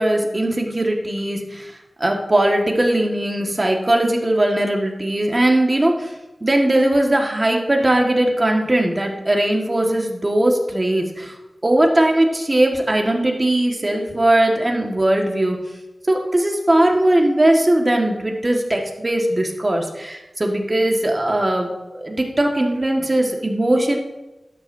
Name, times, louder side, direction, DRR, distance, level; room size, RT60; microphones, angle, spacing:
voice 1, 0.0-1.7 2.0-6.1 6.4-11.4 11.6-15.6 16.1-24.0, right 1 dB, 35° right, 1 dB, 1.6 m, -19 dB
12.0 x 8.5 x 2.7 m, 1.1 s
wide cardioid pair, 60°, 0 cm